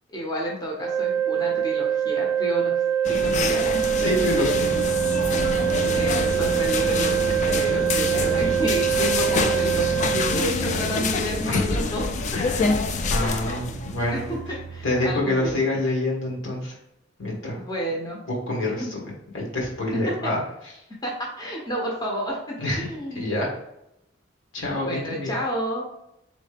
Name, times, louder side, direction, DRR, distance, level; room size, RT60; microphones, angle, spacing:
voice 1, 0.1-2.7 3.0-4.2 5.9-12.0 13.5-13.8 14.1-15.6 17.5-18.2 18.8-18.9 20.0-20.1 21.0-23.3 24.8-25.9, equal, 20° left, -2 dB, 0.7 m, -30 dB
sound 1, 0.7-10.4, right 9 dB, 30° right, 0.7 m, -24 dB
sound 2, 3.0-14.2, left 4 dB, 40° left, 0.3 m, -27 dB
voice 2, 4.0-4.7 11.4-11.6 12.3-12.7 13.1-14.2 14.8-16.7 17.2-17.6 18.3-19.0 19.3-20.4 22.6-22.9 23.1-23.5 24.5-25.3, left 1 dB, 80° left, -2 dB, 1.4 m, -26 dB
sound 3, 4.5-15.2, right 3 dB, 65° right, 0.4 m, -34 dB
3.7 x 3.1 x 3.3 m, 0.84 s
head